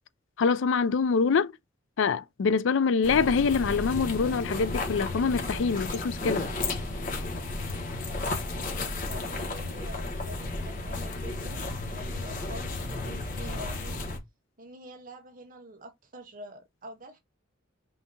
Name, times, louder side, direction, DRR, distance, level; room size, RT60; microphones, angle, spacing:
voice 1, 0.4-1.5 2.0-6.4, left 5 dB, 70° left, 0.4 m, -25 dB
sound 1, 3.0-14.2, left 2 dB, 45° left, 1.4 m, -33 dB
voice 2, 8.4-14.0 14.6-17.2, equal, 45° right, 1.0 m, -46 dB
5.7 x 2.8 x 2.7 m
head